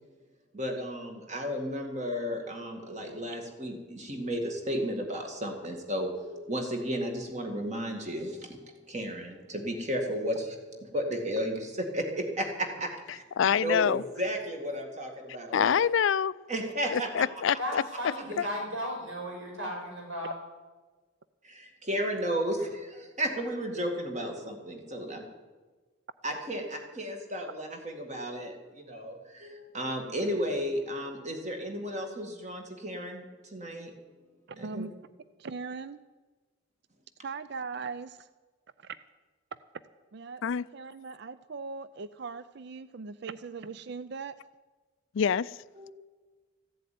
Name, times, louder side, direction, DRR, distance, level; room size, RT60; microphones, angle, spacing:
voice 1, 0.5-10.6 10.9-15.8 16.5-17.3 21.4-25.2 26.2-33.9 34.6-34.9 45.8-45.9, equal, 35° right, 3 dB, 2.1 m, -34 dB
voice 2, 13.4-14.0 15.5-16.3 16.9-17.8 40.4-40.6 45.1-45.6, left 7 dB, 65° left, 19 dB, 0.4 m, -25 dB
voice 3, 17.6-20.4, equal, 70° right, -1 dB, 6.2 m, -35 dB
voice 4, 34.5-34.9 35.4-36.0 37.2-38.3 38.8-39.0 39.5-39.6 40.1-40.4 40.7-44.4, right 4 dB, 55° right, 14 dB, 0.4 m, -39 dB
15.0 x 7.8 x 9.3 m, 1.3 s
head